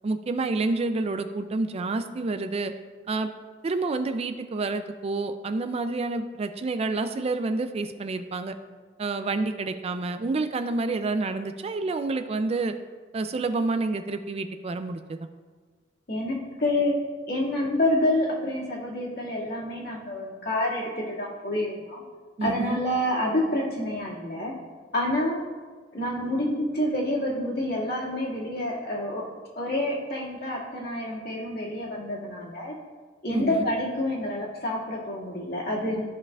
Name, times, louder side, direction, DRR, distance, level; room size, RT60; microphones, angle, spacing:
voice 1, 0.0-2.7 3.1-3.3 3.6-8.5 9.0-12.7 13.1-15.3 22.4-22.8 33.3-33.6, right 3 dB, 35° right, 9 dB, 0.3 m, -28 dB
voice 2, 16.1-16.9 17.3-22.0 22.4-24.5 24.9-25.4 25.9-29.2 29.6-32.7 33.2-36.0, left 1 dB, 55° left, -4 dB, 2.0 m, -28 dB
14.0 x 5.5 x 2.4 m, 1.5 s
head